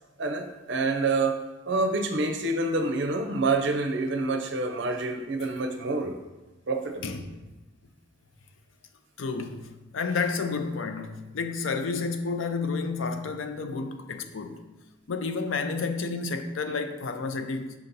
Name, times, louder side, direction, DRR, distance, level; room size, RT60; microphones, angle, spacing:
voice 1, 0.2-1.4 1.7-6.2 6.7-7.2, right 3 dB, 65° right, 0.6 m, -27 dB
voice 2, 9.2-9.7 9.9-14.6 15.1-17.7, left 4 dB, 80° left, 0.5 m, -30 dB
6.3 x 2.8 x 5.2 m
head